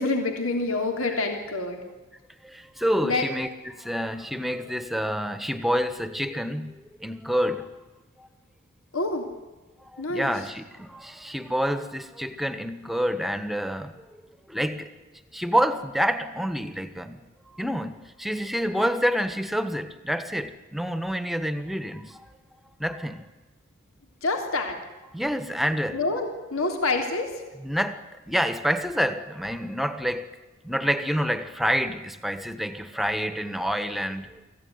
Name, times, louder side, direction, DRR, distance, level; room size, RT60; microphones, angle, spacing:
voice 1, 0.0-1.8 3.0-3.3 8.9-9.3 10.0-10.3 24.2-24.8 25.9-27.3, left 3 dB, 80° left, 4 dB, 3.3 m, -27 dB
voice 2, 2.4-7.7 8.2-8.3 9.8-13.9 14.5-14.9 15.3-22.3 22.8-23.3 25.1-26.0 27.6-30.3 30.6-34.4, equal, ahead, 11 dB, 1.4 m, -28 dB
25.5 x 15.5 x 9.7 m, 1.2 s
head